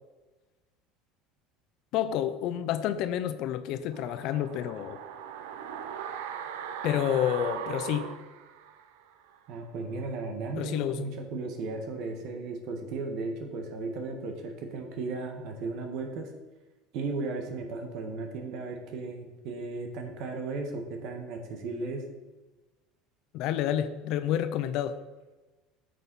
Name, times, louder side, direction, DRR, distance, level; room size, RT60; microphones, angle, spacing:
voice 1, 1.9-5.0 6.8-8.1 10.6-11.0 23.3-25.0, left 10 dB, 60° left, 12 dB, 0.6 m, -29 dB
sound 1, 3.9-9.1 9.4-9.5, right 7 dB, 85° right, 0.7 m, -39 dB
voice 2, 9.5-16.3 16.9-22.0, right 3 dB, 60° right, 4 dB, 1.4 m, -35 dB
9.1 x 6.5 x 4.1 m, 1.2 s
supercardioid pair, 130°, 0 cm